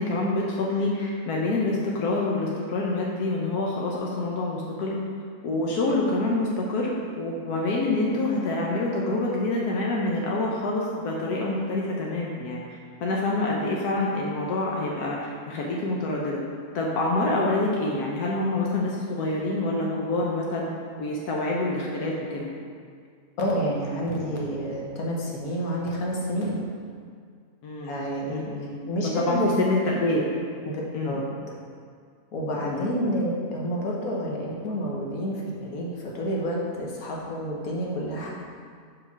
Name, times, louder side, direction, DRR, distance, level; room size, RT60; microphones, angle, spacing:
voice 1, 0.0-5.0 5.4-12.6 13.0-16.4 16.7-20.7 21.0-22.5 27.6-28.0 28.3-28.8 29.3-30.2 30.9-31.2 32.5-32.9, left 2 dB, 90° left, -2 dB, 1.3 m, -26 dB
voice 2, 23.4-26.6 27.8-28.4 28.9-29.6 30.7-31.5 32.3-38.3, equal, 70° left, -3 dB, 1.6 m, -29 dB
5.3 x 4.9 x 5.9 m, 2.1 s
omnidirectional pair, 1.6 m